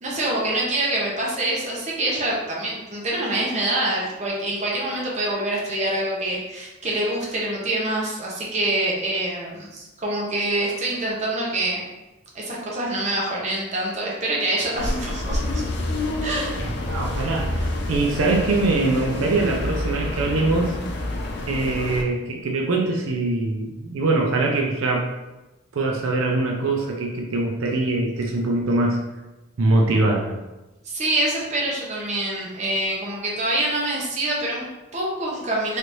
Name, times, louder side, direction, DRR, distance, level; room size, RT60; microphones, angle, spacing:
voice 1, 0.0-11.8 12.3-15.7 16.2-16.6 30.8-35.8, right 1 dB, 35° right, -3 dB, 0.7 m, -25 dB
sound 1, 14.7-22.0, left 1 dB, 55° left, 0.4 m, -28 dB
voice 2, 16.6-20.7 21.5-25.1 25.7-29.0 29.6-30.4, right 2 dB, 80° right, 1 dB, 0.5 m, -23 dB
3.3 x 3.0 x 2.6 m, 1.1 s
head